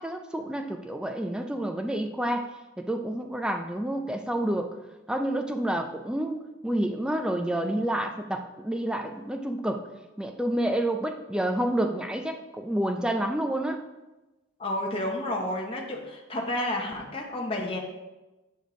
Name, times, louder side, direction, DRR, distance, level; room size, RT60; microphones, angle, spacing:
voice 1, 0.0-2.5 2.8-4.7 5.1-9.8 10.2-13.8, right 1 dB, 5° right, 4 dB, 0.4 m, -29 dB
voice 2, 14.6-17.8, left 1 dB, 30° left, -1 dB, 0.9 m, -31 dB
8.3 x 5.3 x 3.8 m, 1.1 s
head